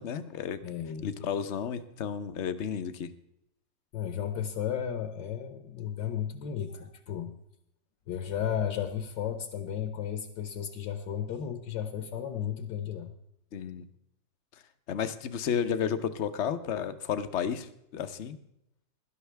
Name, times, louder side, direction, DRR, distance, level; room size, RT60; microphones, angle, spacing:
voice 1, 0.0-0.6 1.0-3.1 13.5-13.9 14.9-18.4, left 8 dB, 55° left, 11 dB, 0.8 m, -32 dB
voice 2, 0.6-1.1 3.9-7.4 8.1-13.1, left 9 dB, 75° left, 8 dB, 1.6 m, -34 dB
17.0 x 12.0 x 3.4 m, 0.79 s
omnidirectional pair, 2.0 m